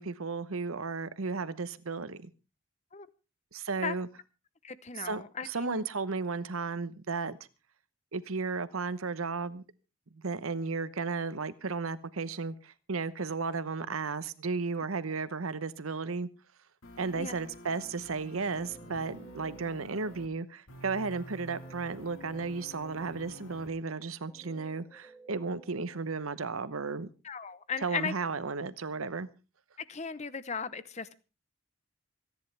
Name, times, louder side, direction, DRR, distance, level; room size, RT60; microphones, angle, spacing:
voice 1, 0.0-2.3 3.5-4.1 4.9-7.4 8.1-9.6 10.1-16.3 17.0-27.1 27.8-29.3, right 4 dB, 85° right, 0.9 m, -34 dB
voice 2, 4.6-5.9 17.2-17.3 27.2-28.1 29.9-31.1, left 6 dB, 35° left, 0.8 m, -36 dB
sound 1, 16.8-20.3 20.7-23.7, left 1 dB, 85° left, 2.0 m, -49 dB
Guitar, 18.0-20.6 21.3-26.7, right 3 dB, 10° left, 1.7 m, -57 dB
27.0 x 10.5 x 3.4 m
head